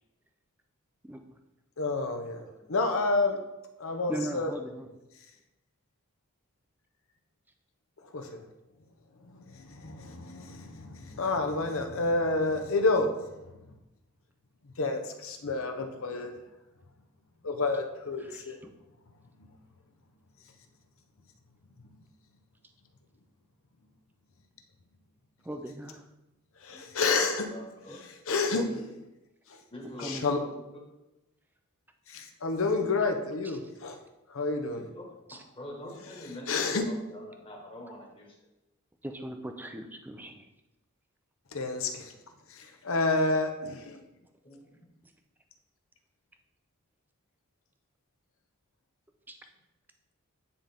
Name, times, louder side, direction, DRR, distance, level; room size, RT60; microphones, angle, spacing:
voice 1, 1.8-3.4 3.8-4.5 8.1-8.4 9.3-13.1 14.8-16.3 17.4-18.6 26.6-27.5 27.9-28.9 29.5-29.6 30.0-30.4 32.1-34.0 34.3-34.9 36.2-36.8 41.5-42.1 42.5-44.0, left 3 dB, 65° left, 5 dB, 0.8 m, -29 dB
voice 2, 4.1-4.9 18.2-18.7 25.4-26.0 26.7-26.9 27.9-28.0 28.6-28.8 29.8-30.2 33.0-33.1 33.4-33.6 35.3-35.4 39.0-40.5 49.3-49.4, right 1 dB, 10° right, 6 dB, 0.4 m, -40 dB
voice 3, 27.5-28.6 29.7-30.1 30.4-30.6 34.7-35.1 35.5-38.3 44.4-44.8, left 1 dB, 25° left, -2 dB, 1.5 m, -45 dB
9.7 x 3.8 x 3.5 m, 0.97 s
head